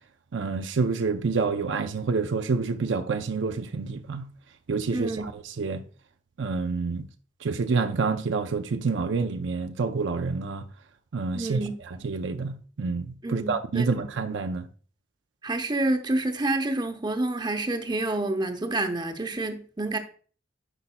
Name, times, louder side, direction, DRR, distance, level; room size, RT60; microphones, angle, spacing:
voice 1, 0.3-4.2 4.7-5.8 6.4-7.0 7.4-10.6 11.1-11.6 12.0-14.7, right 4 dB, 75° right, 0.5 m, -28 dB
voice 2, 4.9-5.2 11.3-11.7 13.2-13.9 15.4-20.0, right 2 dB, 25° right, 0.7 m, -28 dB
9.9 x 5.3 x 2.2 m
head